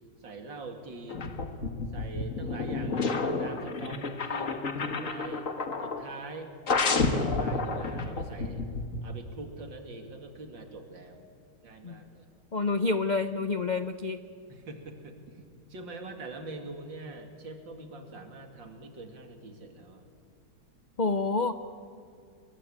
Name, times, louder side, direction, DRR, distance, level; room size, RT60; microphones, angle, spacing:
voice 1, 0.2-1.4 1.9-5.4 5.8-8.6 9.0-11.3 11.6-12.3 14.5-15.4 15.7-20.1, right 3 dB, 85° right, 5 dB, 3.2 m, -44 dB
sound 1, 1.1-6.1 6.7-9.0, left 3 dB, 45° left, 1.9 m, -30 dB
voice 2, 12.5-14.2 21.0-21.5, left 3 dB, 80° left, 10 dB, 0.4 m, -28 dB
26.5 x 22.5 x 8.8 m, 2.3 s
omnidirectional pair, 2.0 m